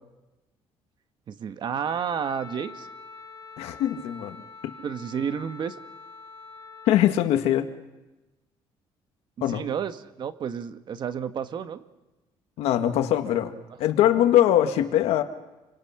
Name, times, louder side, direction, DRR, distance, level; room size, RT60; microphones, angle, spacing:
voice 1, 1.3-2.9 4.8-5.8 9.5-11.8, right 7 dB, 50° right, 11 dB, 1.3 m, -31 dB
Wind instrument woodwind instrument, 1.8-7.0, left 4 dB, 40° left, 6.0 m, -45 dB
voice 2, 3.6-4.4 4.6-4.7 6.9-7.7 9.4-9.6 12.6-13.5 13.8-15.2, left 12 dB, 90° left, 8 dB, 1.7 m, -22 dB
28.5 x 24.5 x 5.9 m, 1.1 s
cardioid pair, 125°, 10 cm